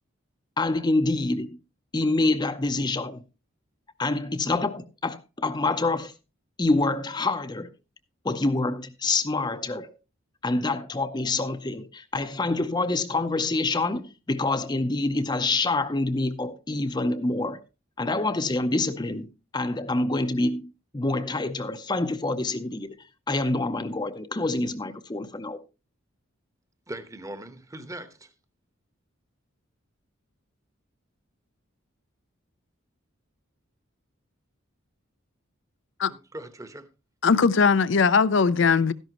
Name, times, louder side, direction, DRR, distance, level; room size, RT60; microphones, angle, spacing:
voice 1, 0.6-1.5 1.9-3.2 4.0-6.1 6.6-7.7 8.2-9.9 10.4-17.6 18.0-19.3 19.5-22.9 23.3-25.6, left 2 dB, 20° left, 0.6 m, -26 dB
voice 2, 26.9-28.3 36.1-36.9, right 1 dB, 15° right, 1.0 m, -40 dB
voice 3, 37.2-38.9, left 5 dB, 60° left, 0.5 m, -20 dB
13.0 x 11.0 x 3.0 m
head